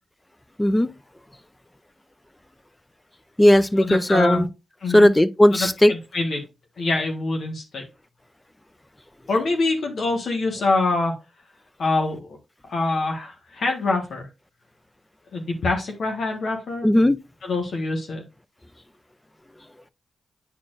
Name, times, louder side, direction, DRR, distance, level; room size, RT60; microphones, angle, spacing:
voice 1, 0.6-0.9 3.4-4.5 4.9-5.9 16.8-17.2, left 1 dB, 15° left, 0.6 m, -16 dB
voice 2, 3.8-4.4 4.8-5.1 5.5-6.4 6.8-7.8 9.3-11.1 11.8-12.2 12.7-14.3 15.3-16.9 17.4-18.2, left 3 dB, 70° left, 1.4 m, -25 dB
9.7 x 4.3 x 2.5 m
supercardioid pair, 50°, 0 cm